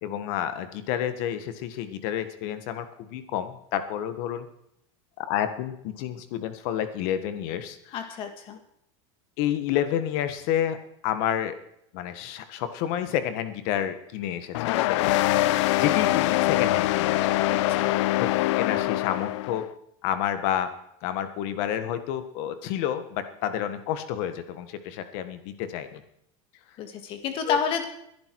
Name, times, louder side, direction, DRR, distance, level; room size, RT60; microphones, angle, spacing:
voice 1, 0.0-4.5 5.2-7.9 9.4-10.8 11.0-11.5 11.9-17.3 18.2-18.3 18.6-19.6 20.0-20.7 21.0-26.0 27.4-27.6, left 10 dB, 50° left, 10 dB, 1.5 m, -30 dB
voice 2, 7.9-8.6 17.5-18.0 26.8-27.8, left 7 dB, 35° left, 7 dB, 1.9 m, -30 dB
sound 1, 14.5-19.6, left 15 dB, 65° left, 0.6 m, -23 dB
21.5 x 10.5 x 4.7 m, 0.76 s
supercardioid pair, 170°, 16 cm